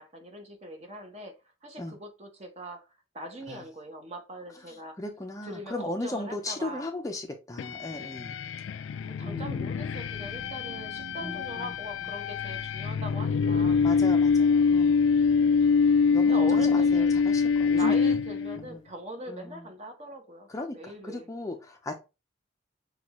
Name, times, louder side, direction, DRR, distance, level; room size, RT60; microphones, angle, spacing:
voice 1, 0.0-1.3 1.6-2.9 3.1-5.0 5.4-6.9 8.7-13.8 15.3-17.1 17.7-20.5 20.7-21.3, right 1 dB, 35° right, 0.9 m, -41 dB
voice 2, 4.7-8.4 9.2-9.7 11.2-11.8 13.8-15.0 16.1-18.0 18.6-18.8 19.3-19.7 20.5-21.9, left 2 dB, 15° left, 0.5 m, -37 dB
sound 1, 7.6-18.6, left 5 dB, 85° left, 0.3 m, -25 dB
sound 2, 9.3-18.3, right 3 dB, 85° right, 0.5 m, -49 dB
6.0 x 2.3 x 2.9 m
head